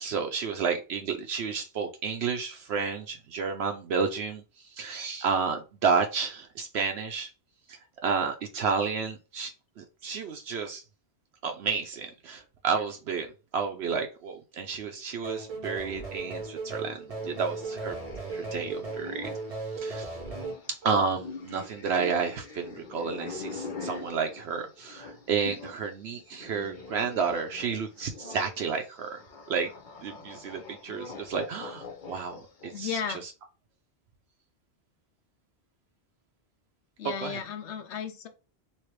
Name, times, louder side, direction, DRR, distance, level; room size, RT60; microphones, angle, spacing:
voice 1, 0.0-7.3 7.7-10.8 11.4-18.0 18.3-19.3 19.8-20.2 20.7-29.2 29.5-29.7 30.0-33.0 37.0-37.4, right 5 dB, 70° right, 0.8 m, -31 dB
sound 1, 15.2-20.5, right 3 dB, 35° right, 0.7 m, -36 dB
sound 2, 17.1-25.8 26.1-32.9, left 4 dB, 50° left, 0.9 m, -43 dB
voice 2, 32.7-33.2 37.0-38.3, left 7 dB, 80° left, 1.0 m, -34 dB
3.1 x 2.8 x 3.0 m
omnidirectional pair, 1.2 m